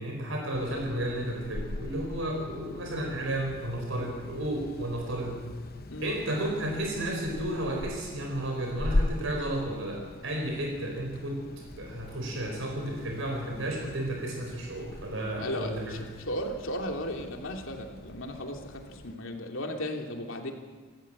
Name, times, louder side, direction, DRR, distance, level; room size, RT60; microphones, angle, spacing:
voice 1, 0.0-5.5 6.0-11.4 11.7-16.0, right 1 dB, 65° right, 2 dB, 4.3 m, -32 dB
sound 1, 0.5-19.2, left 1 dB, 45° left, 0.8 m, -39 dB
voice 2, 15.4-20.5, equal, 65° left, 2 dB, 3.0 m, -35 dB
28.5 x 14.0 x 8.8 m, 1.5 s
head